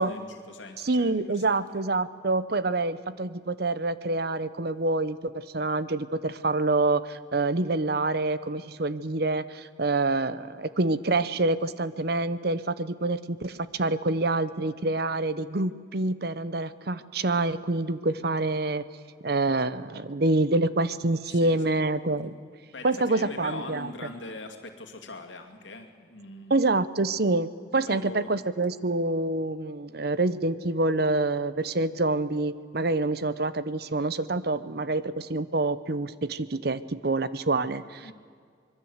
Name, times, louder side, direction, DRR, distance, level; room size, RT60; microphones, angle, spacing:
voice 1, 0.0-1.8 21.3-21.6 22.7-26.6 27.7-28.4 38.0-38.1, left 2 dB, 80° left, 5 dB, 2.5 m, -42 dB
voice 2, 0.8-18.8 19.2-22.3 22.8-23.9 26.5-38.1, right 2 dB, 55° right, 15 dB, 0.8 m, -27 dB
25.0 x 22.0 x 8.0 m, 2.1 s
head